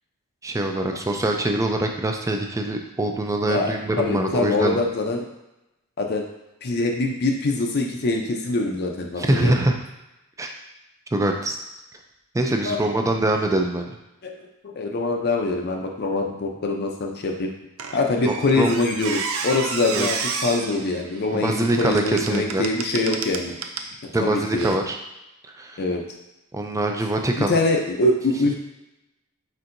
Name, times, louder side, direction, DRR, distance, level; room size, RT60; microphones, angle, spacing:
voice 1, 0.4-4.8 9.2-9.8 10.4-10.5 11.1-11.6 12.3-14.0 18.2-18.7 19.9-20.1 21.3-22.7 24.1-25.0 25.5-25.8 26.5-27.5, right 1 dB, 15° right, 3 dB, 0.4 m, -24 dB
voice 2, 3.5-5.2 6.0-6.2 6.6-9.5 12.6-12.8 14.2-14.3 14.6-17.5 17.9-23.6 24.2-24.8 25.8-26.1 27.4-28.6, left 2 dB, 50° left, 2 dB, 0.5 m, -24 dB
Squeak, 17.8-23.9 24.6-24.8, right 5 dB, 70° right, 0.4 m, -31 dB
4.6 x 4.4 x 2.6 m, 0.93 s
head